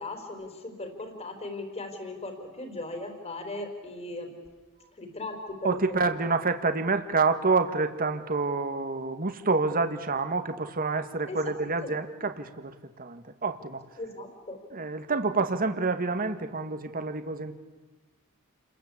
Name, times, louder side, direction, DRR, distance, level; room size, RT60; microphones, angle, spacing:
voice 1, 0.0-4.3 4.9-6.4 11.3-11.5 11.8-11.9 14.0-14.6, left 2 dB, 30° left, 5 dB, 4.5 m, -38 dB
voice 2, 5.6-12.7 13.0-13.8 14.7-17.6, right 3 dB, 40° right, 8 dB, 1.7 m, -28 dB
30.0 x 22.0 x 8.6 m, 1.2 s
head